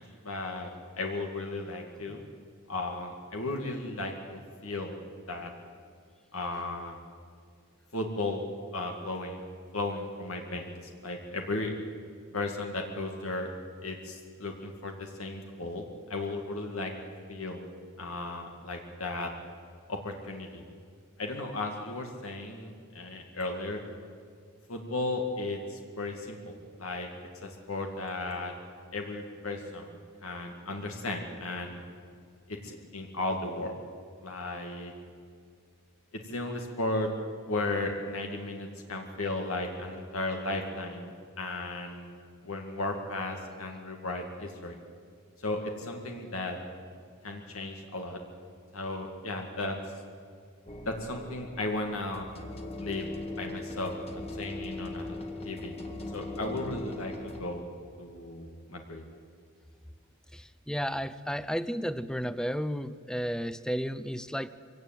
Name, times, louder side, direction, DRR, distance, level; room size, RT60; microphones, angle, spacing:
voice 1, 0.0-2.2 2.7-5.0 5.3-5.5 6.3-7.0 7.9-8.4 8.7-9.4 9.7-11.7 12.3-13.5 13.8-16.9 17.3-17.7 18.0-19.3 19.9-20.6 21.2-23.8 24.7-27.1 27.4-28.5 28.9-31.8 32.5-33.7 34.2-34.9 36.1-37.1 37.5-42.2 42.4-44.8 45.4-46.6 47.2-48.2 48.7-49.8 50.9-52.3 52.8-53.1 53.4-55.2 55.4-55.8 56.1-57.7 58.0-59.0, left 2 dB, 85° left, 2 dB, 2.2 m, -35 dB
sound 1, 50.7-57.4, left 2 dB, 30° left, 1.8 m, -40 dB
voice 2, 60.3-64.5, equal, 5° left, 15 dB, 0.6 m, -33 dB
23.0 x 17.0 x 9.2 m, 2.1 s
head